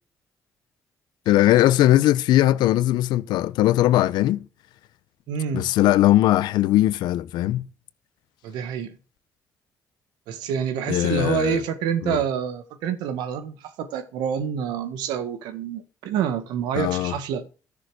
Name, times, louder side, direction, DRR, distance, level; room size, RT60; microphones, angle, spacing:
voice 1, 1.3-4.5 5.5-7.7 10.9-11.6 12.0-12.2 16.7-17.1, left 14 dB, 85° left, 0.8 m, -19 dB
voice 2, 5.3-5.7 8.4-9.0 10.3-17.5, right 8 dB, 85° right, 1.7 m, -27 dB
14.0 x 7.0 x 6.3 m
supercardioid pair, 50°, 7 cm